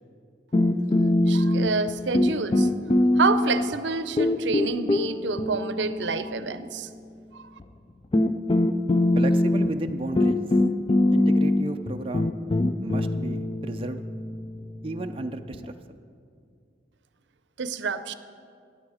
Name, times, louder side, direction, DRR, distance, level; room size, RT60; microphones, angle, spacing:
sound 1, 0.5-1.9 2.1-3.8 4.2-6.6 7.6-7.7 8.1-15.7, left 1 dB, 30° left, 0.4 m, -23 dB
voice 1, 1.3-2.7 3.2-6.9 7.3-7.4 17.6-18.1, right 4 dB, 90° right, 12 dB, 0.6 m, -28 dB
voice 2, 9.2-10.4 11.1-12.3 12.8-14.0 14.8-15.7, right 2 dB, 30° right, 6 dB, 0.4 m, -33 dB
15.0 x 9.6 x 4.9 m, 2.3 s
head